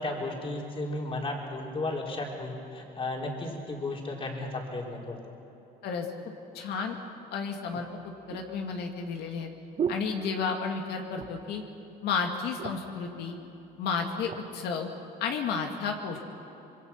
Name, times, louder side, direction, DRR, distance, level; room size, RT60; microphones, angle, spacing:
voice 1, 0.0-5.4, left 2 dB, 30° left, -1 dB, 4.1 m, -34 dB
voice 2, 6.5-7.0 7.3-9.5 9.9-11.6 12.0-13.4 13.8-14.9 15.2-16.2, left 5 dB, 80° left, 3 dB, 2.2 m, -32 dB
sound 1, 6.8-6.9 7.7-10.8 11.1-11.6 11.9-12.0 12.3-13.0 13.7-14.5 15.1-15.3, right 7 dB, 45° right, 1.2 m, -38 dB
25.5 x 22.0 x 5.9 m, 3.0 s
cardioid pair, 110°, 17 cm